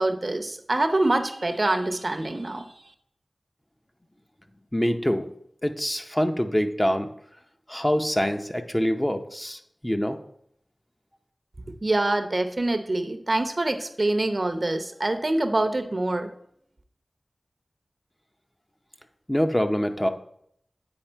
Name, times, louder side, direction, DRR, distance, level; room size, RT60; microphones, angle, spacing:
voice 1, 0.0-2.6 11.8-16.3, right 2 dB, 45° right, 7 dB, 0.7 m, -25 dB
voice 2, 4.7-5.3 5.6-7.1 7.7-10.2 19.3-20.1, equal, 15° left, 6 dB, 0.7 m, -25 dB
8.7 x 4.8 x 4.5 m, 0.69 s
wide cardioid pair, 60°, 0 cm